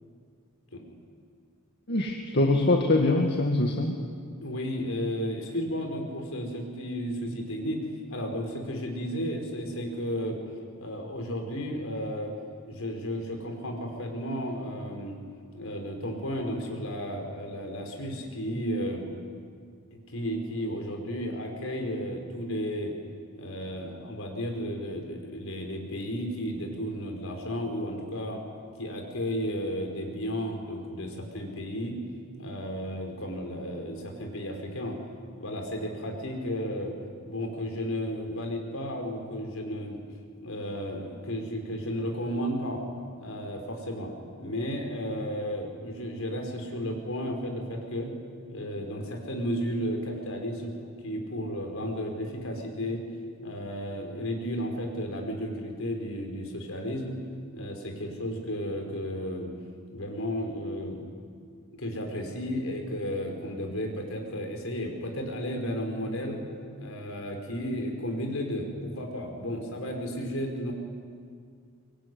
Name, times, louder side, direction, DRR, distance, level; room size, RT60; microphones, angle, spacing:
voice 1, 1.9-4.0, left 2 dB, 55° left, 1 dB, 2.0 m, -23 dB
voice 2, 4.4-10.4 10.8-12.3 12.7-15.2 15.5-19.1 19.9-22.9 23.3-28.4 28.8-32.0 32.4-35.0 35.3-36.9 37.3-40.0 40.4-42.8 43.2-44.1 44.4-48.1 48.5-50.7 51.0-53.0 53.4-57.2 57.5-59.5 59.9-61.0 61.8-66.4 66.8-70.7, equal, 70° left, 3 dB, 5.4 m, -33 dB
24.0 x 23.5 x 9.7 m, 2.2 s
head